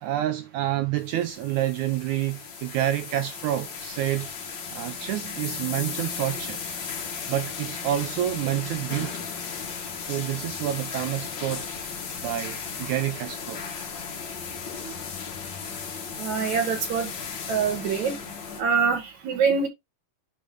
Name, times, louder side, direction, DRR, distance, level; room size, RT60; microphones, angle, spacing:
voice 1, 0.0-4.3 4.7-6.6 7.3-9.2 10.1-13.6, right 13 dB, 85° right, 1.7 m, -28 dB
sound 1, 1.0-18.6, left 6 dB, 60° left, 1.2 m, -36 dB
voice 2, 16.2-17.1 17.5-18.1 18.6-19.7, right 6 dB, 60° right, 2.8 m, -24 dB
10.0 x 3.4 x 3.4 m
omnidirectional pair, 4.0 m